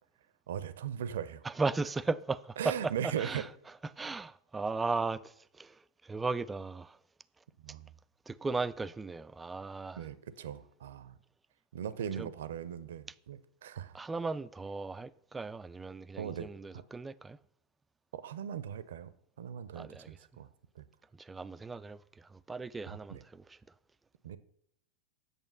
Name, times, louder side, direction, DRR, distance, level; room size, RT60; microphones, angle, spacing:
voice 1, 0.5-1.4 2.6-3.4 7.6-7.9 10.0-11.1 11.7-13.9 16.2-16.5 16.7-16.8 18.1-19.1 19.4-20.5 20.8-20.9 22.9-23.2 24.2-24.4, right 9 dB, 60° right, 0.6 m, -39 dB
voice 2, 1.4-2.7 3.2-3.5 4.0-5.7 6.0-7.0 8.3-10.1 12.2-12.3 13.9-17.4 19.7-20.1 21.2-23.6, right 3 dB, 10° right, 0.3 m, -36 dB
8.3 x 6.9 x 5.5 m
figure-of-eight pair, 90°, 0 cm